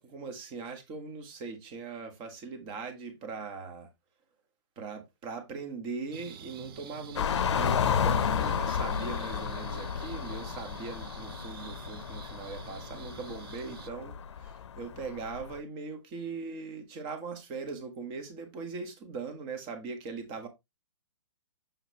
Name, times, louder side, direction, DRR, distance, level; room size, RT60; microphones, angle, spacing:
voice 1, 0.0-3.9 4.7-20.5, right 4 dB, 25° right, 1.6 m, -40 dB
sound 1, 6.1-13.9, right 8 dB, 50° right, 0.9 m, -48 dB
sound 2, 7.1-15.6, left 7 dB, 70° left, 0.7 m, -32 dB
6.9 x 5.6 x 2.9 m
hypercardioid pair, 155°, 15 cm